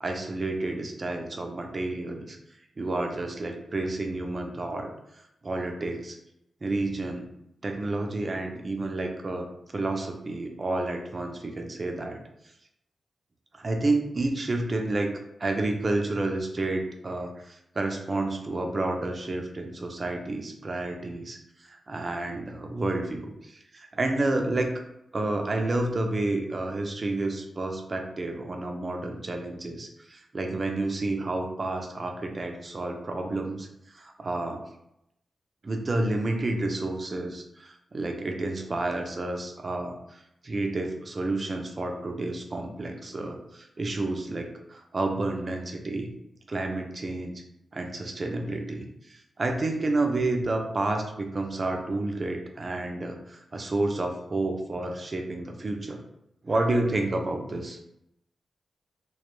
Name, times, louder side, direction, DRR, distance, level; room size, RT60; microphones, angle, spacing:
voice 1, 0.0-2.4 2.8-4.9 5.4-6.2 6.6-7.3 7.6-12.2 13.5-24.7 25.1-34.6 35.6-46.1 46.5-47.3 47.7-56.0 56.4-57.8, right 2 dB, 45° right, 3 dB, 0.4 m, -30 dB
2.2 x 2.0 x 3.0 m, 0.79 s
cardioid pair, 70°, 0 cm